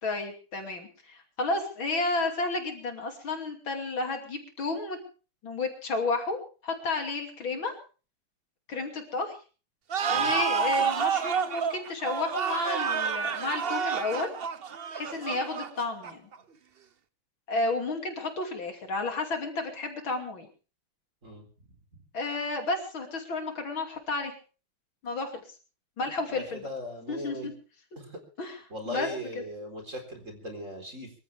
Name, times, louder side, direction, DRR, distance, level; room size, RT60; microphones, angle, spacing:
voice 1, 0.0-5.0 5.4-6.4 6.6-7.7 8.7-9.4 10.1-14.3 14.9-16.3 17.5-20.5 22.1-24.3 25.0-25.3 26.0-26.6 27.1-27.5 28.4-28.6 28.9-29.1, left 3 dB, 65° left, 3 dB, 3.6 m, -32 dB
sound 1, 9.9-16.3, right 6 dB, 80° right, 0.5 m, -29 dB
voice 2, 26.0-27.5 28.0-28.2 28.7-31.1, equal, 35° right, 4 dB, 4.4 m, -39 dB
24.5 x 15.0 x 3.5 m, 0.37 s
omnidirectional pair, 2.4 m